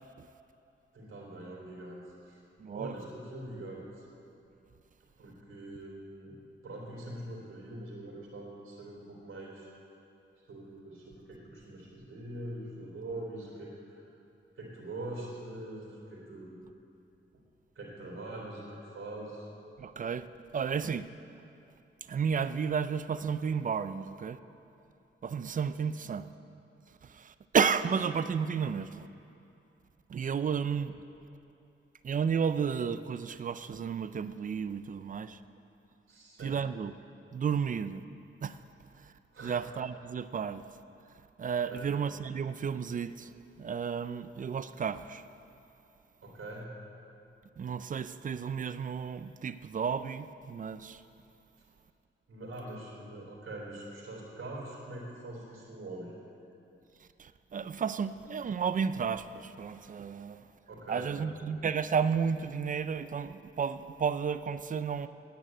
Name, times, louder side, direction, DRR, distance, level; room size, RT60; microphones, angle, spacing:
voice 1, 0.9-2.4 2.7-4.0 5.2-6.4 6.6-9.7 10.5-14.0 14.5-16.6 17.7-18.7 18.9-19.5 30.4-30.5 36.1-36.6 39.3-39.6 41.6-41.9 46.2-46.7 52.3-56.2 57.7-57.8 60.7-61.1, right 1 dB, 75° right, -3 dB, 3.4 m, -43 dB
voice 2, 2.6-2.9 19.8-20.3 20.5-21.1 22.1-24.4 25.2-26.3 27.0-29.1 30.1-30.9 32.0-35.4 36.4-36.9 37.3-38.0 38.4-38.6 39.0-39.1 39.4-40.6 41.4-43.3 43.6-45.2 47.6-51.0 57.2-60.4 60.9-65.1, right 6 dB, 40° right, 13 dB, 0.4 m, -32 dB
10.5 x 9.1 x 8.9 m, 2.7 s
wide cardioid pair, 170°, 21 cm